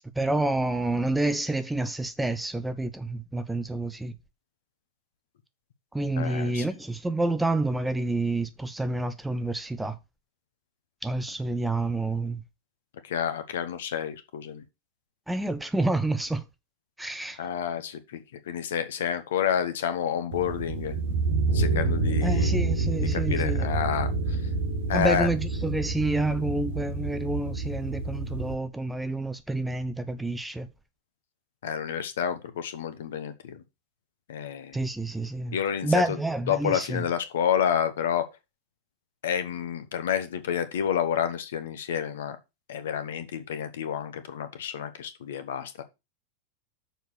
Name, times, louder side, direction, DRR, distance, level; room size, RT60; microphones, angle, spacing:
voice 1, 0.2-4.1 5.9-10.0 11.0-12.4 15.3-16.4 17.0-17.4 22.2-23.7 24.9-30.7 34.7-35.6 35.8-37.1, right 2 dB, 5° right, 0.7 m, -28 dB
voice 2, 6.2-6.7 13.1-14.6 17.4-21.0 21.5-22.6 23.1-24.4 24.9-25.3 31.6-33.6 34.3-34.8 35.5-35.9 36.5-38.2 39.2-42.4 42.7-45.8, left 8 dB, 60° left, 1.1 m, -29 dB
sound 1, 20.3-28.5, right 3 dB, 55° right, 1.6 m, -28 dB
6.7 x 4.6 x 6.3 m
figure-of-eight pair, 90°, 0 cm